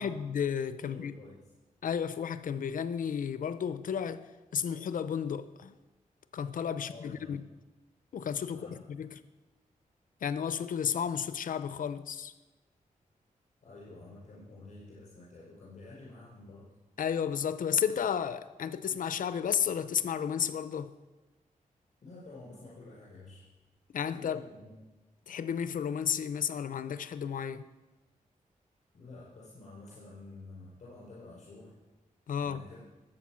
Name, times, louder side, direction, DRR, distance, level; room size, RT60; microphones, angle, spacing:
voice 1, 0.0-1.1 1.8-4.3 4.5-5.7 6.3-7.4 8.1-9.1 10.2-12.3 17.0-20.9 23.9-24.4 25.3-27.7 32.3-32.6, left 8 dB, 75° left, 0.6 m, -32 dB
voice 2, 0.9-1.5 6.8-7.4 8.5-8.8 13.6-16.7 22.0-23.5 24.1-24.8 28.9-31.7 32.4-32.9, left 2 dB, 55° left, 5.3 m, -50 dB
20.0 x 7.7 x 6.3 m
wide cardioid pair, 160°, 14 cm